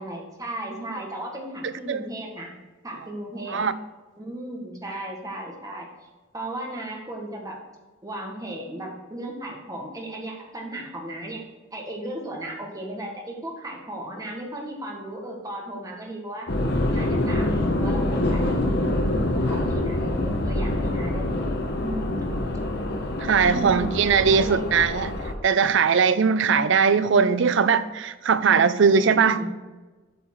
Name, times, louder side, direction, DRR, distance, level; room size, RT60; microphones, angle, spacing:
voice 1, 0.0-2.5 2.8-3.6 4.2-5.9 6.3-7.6 8.0-11.4 11.7-16.5 16.9-18.8 19.3-21.4 21.8-22.4 23.5-24.7 26.4-26.7 29.2-29.5, right 1 dB, 15° right, -1 dB, 1.5 m, -35 dB
voice 2, 1.6-2.0 3.5-3.7 23.2-25.1 25.4-29.4, right 6 dB, 60° right, 13 dB, 0.5 m, -20 dB
sound 1, 16.5-25.3, left 1 dB, 55° left, 1.0 m, -25 dB
8.4 x 5.6 x 4.5 m, 1.2 s
head